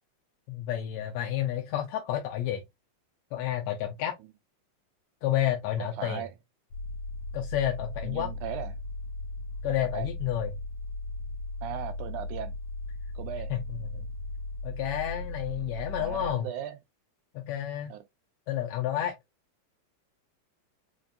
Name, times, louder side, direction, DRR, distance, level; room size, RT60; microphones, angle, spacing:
voice 1, 0.5-2.6 3.3-4.2 5.2-6.2 7.3-8.3 9.6-10.5 13.5-14.1 14.6-16.5 17.3-17.9 18.5-19.1, left 11 dB, 80° left, 1.6 m, -30 dB
voice 2, 5.8-6.3 8.0-8.7 9.9-10.1 11.6-12.5 13.2-13.5 16.0-16.8 17.9-18.0, right 10 dB, 85° right, 2.1 m, -37 dB
sound 1, 6.7-16.3, left 2 dB, 65° left, 1.8 m, -37 dB
5.1 x 2.7 x 2.4 m
omnidirectional pair, 3.5 m